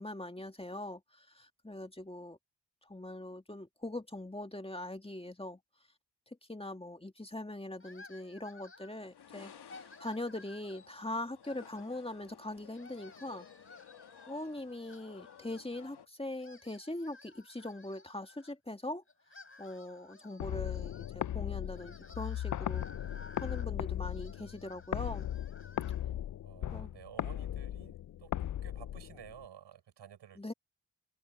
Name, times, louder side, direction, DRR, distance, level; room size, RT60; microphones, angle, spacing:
voice 1, 0.0-2.4 2.8-5.6 6.5-9.5 10.0-13.5 14.3-19.0 19.6-22.9 23.4-25.3 26.7-26.9 30.4-30.5, left 1 dB, 15° left, 2.1 m, -41 dB
sound 1, 7.8-9.1 9.5-10.9 11.4-12.4 12.7-15.9 16.3-18.5 19.1-26.0, left 3 dB, 30° left, 6.6 m, -56 dB
sound 2, 9.0-16.1, left 8 dB, 70° left, 1.5 m, -56 dB
sound 3, 20.4-29.4, left 11 dB, 50° left, 0.4 m, -37 dB
voice 2, 26.4-28.3 28.6-30.5, right 9 dB, 90° right, 6.8 m, -53 dB
cardioid pair, 55°, 41 cm